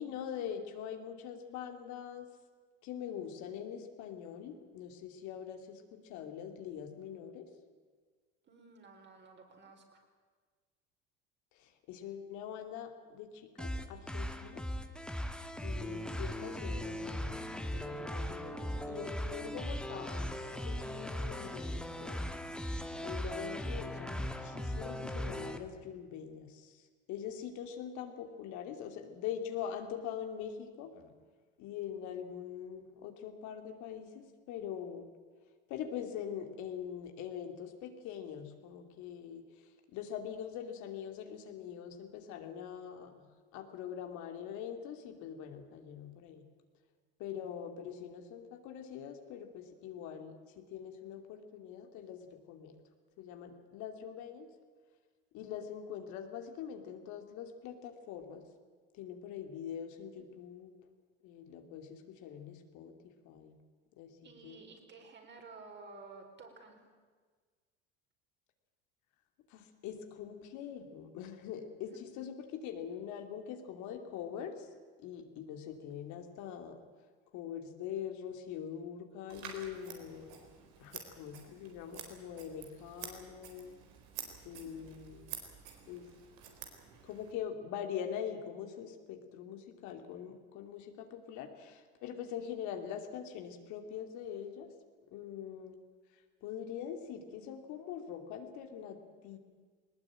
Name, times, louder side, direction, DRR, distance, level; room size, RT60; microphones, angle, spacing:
voice 1, 0.0-2.3 2.8-7.5 11.5-14.6 15.6-17.4 17.7-22.2 23.0-31.1 31.6-35.1 35.7-46.4 47.2-52.8 53.2-54.5 55.3-58.4 58.9-60.7 61.2-63.5 64.0-64.6 69.5-74.7 75.0-76.8 77.3-80.4 80.8-83.7 84.4-85.3 85.9-86.1 87.0-94.7 95.1-95.8 96.4-99.4, left 8 dB, 65° left, 5 dB, 2.7 m, -43 dB
voice 2, 8.4-10.0 64.2-66.8 71.9-72.2 84.5-84.9, right 3 dB, 35° right, 3 dB, 4.8 m, -53 dB
sound 1, 13.6-25.6, equal, 5° left, 1.6 m, -38 dB
Scissors, 79.3-87.3, right 8 dB, 75° right, 4.2 m, -49 dB
19.5 x 19.0 x 9.0 m, 1.5 s
supercardioid pair, 100°, 31 cm